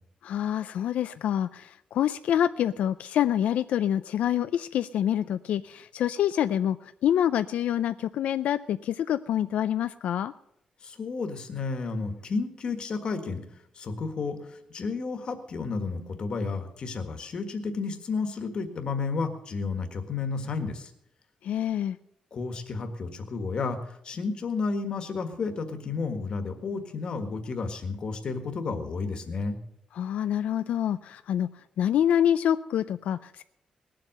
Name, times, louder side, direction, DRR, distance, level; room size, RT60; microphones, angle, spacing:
voice 1, 0.2-10.3 21.4-22.0 29.9-33.4, left 10 dB, 90° left, 11 dB, 0.4 m, -26 dB
voice 2, 10.8-13.4 13.7-20.9 22.3-29.6, left 4 dB, 40° left, 7 dB, 1.6 m, -32 dB
19.5 x 7.7 x 6.5 m, 0.78 s
wide cardioid pair, 170°, 2 cm